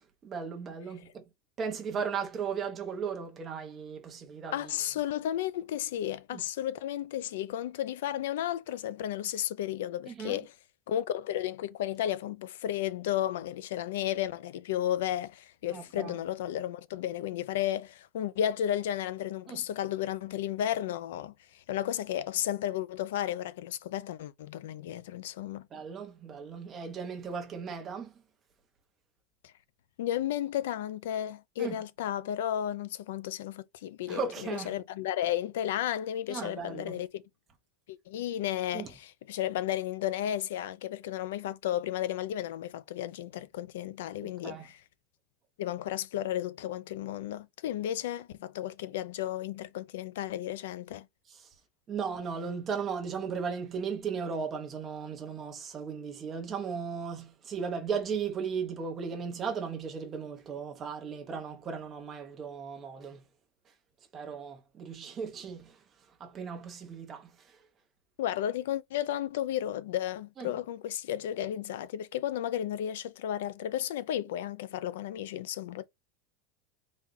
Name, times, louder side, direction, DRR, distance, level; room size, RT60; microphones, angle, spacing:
voice 1, 0.2-1.2 1.6-4.7 6.3-6.4 10.1-10.4 15.7-16.2 19.5-19.6 25.7-28.1 31.6-31.8 34.1-34.7 36.3-37.0 38.7-38.9 44.2-44.7 51.3-51.5 51.9-63.2 64.1-65.8 66.2-67.6 70.4-70.5, right 6 dB, 20° right, 0.9 m, -36 dB
voice 2, 4.5-10.5 10.9-25.7 29.4-29.5 30.0-37.2 37.9-44.8 45.6-51.1 68.2-75.8, left 11 dB, 85° left, 0.4 m, -33 dB
4.1 x 2.4 x 3.9 m
supercardioid pair, 180°, 0 cm